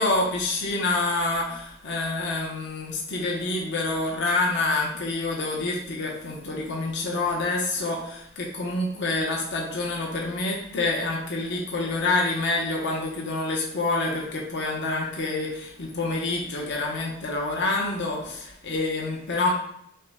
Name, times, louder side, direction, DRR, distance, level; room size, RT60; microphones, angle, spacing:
voice 1, 0.0-19.5, left 2 dB, 50° left, -2 dB, 0.7 m, -27 dB
5.4 x 2.1 x 3.4 m, 0.74 s
head